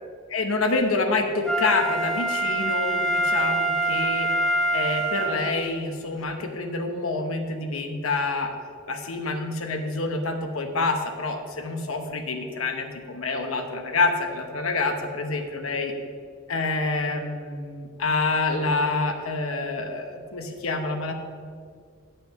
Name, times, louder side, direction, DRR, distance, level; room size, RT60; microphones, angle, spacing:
voice 1, 0.3-4.3 4.7-8.5 8.9-15.9 16.5-21.1, left 3 dB, 85° left, 5 dB, 1.0 m, -27 dB
Wind instrument woodwind instrument, 1.4-5.7 6.2-6.3, right 1 dB, 5° left, 0.6 m, -25 dB
8.8 x 7.6 x 5.7 m, 2.1 s
head